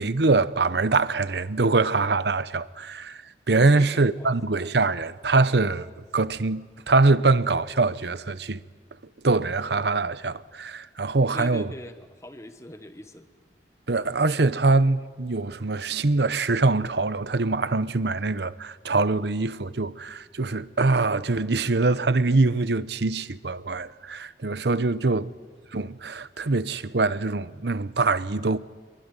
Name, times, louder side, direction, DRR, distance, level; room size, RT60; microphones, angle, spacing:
voice 1, 0.0-8.6 9.2-11.7 13.9-25.3 25.7-28.6, right 3 dB, 75° right, 0.9 m, -23 dB
voice 2, 3.6-4.4 11.3-13.3 25.0-25.5, left 1 dB, 15° left, 1.2 m, -42 dB
26.0 x 22.0 x 9.9 m
head